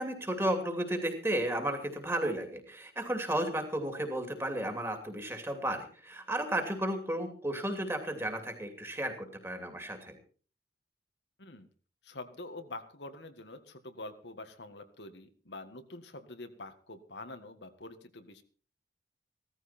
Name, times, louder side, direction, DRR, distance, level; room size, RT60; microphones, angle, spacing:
voice 1, 0.0-10.2, right 1 dB, 15° right, 5 dB, 2.7 m, -33 dB
voice 2, 12.0-18.4, left 2 dB, 85° left, 8 dB, 1.8 m, -46 dB
16.5 x 14.0 x 4.4 m, 0.41 s
head